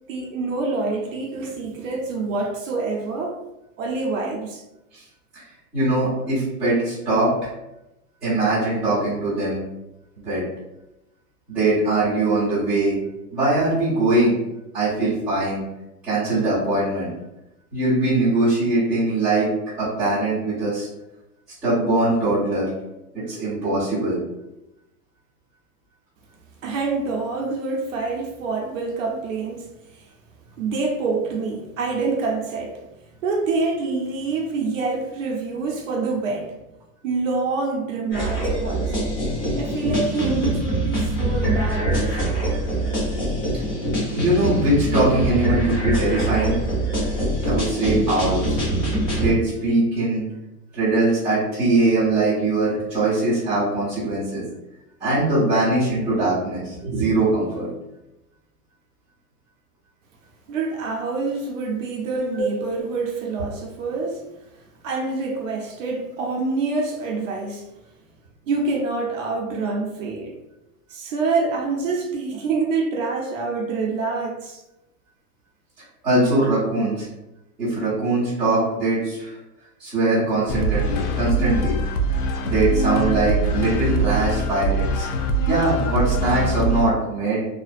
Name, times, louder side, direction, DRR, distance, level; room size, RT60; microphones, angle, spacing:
voice 1, 0.1-3.4 3.8-4.6 26.6-29.7 29.9-30.0 30.6-32.9 33.2-36.6 37.0-39.0 39.6-42.2 60.5-64.2 64.8-67.6 68.5-70.4 70.9-74.6, right 3 dB, 60° right, 0 dB, 0.5 m, -26 dB
voice 2, 5.7-7.5 8.2-9.6 10.2-10.4 11.5-13.0 13.3-14.4 14.7-15.6 16.0-17.1 17.7-19.5 19.8-20.9 21.6-22.7 23.1-24.2 44.1-46.6 47.4-48.6 49.1-50.2 50.7-54.4 55.0-57.7 62.3-62.5 76.0-77.1 77.6-79.4 79.8-81.8 82.4-85.1 85.4-87.4, right 2 dB, ahead, -13 dB, 0.6 m, -21 dB
sound 1, 38.1-49.3, right 1 dB, 25° left, 0.9 m, -24 dB
sound 2, 80.5-86.8, right 1 dB, 70° left, 0.5 m, -23 dB
2.4 x 2.1 x 2.4 m, 0.92 s
hypercardioid pair, 160°, 46 cm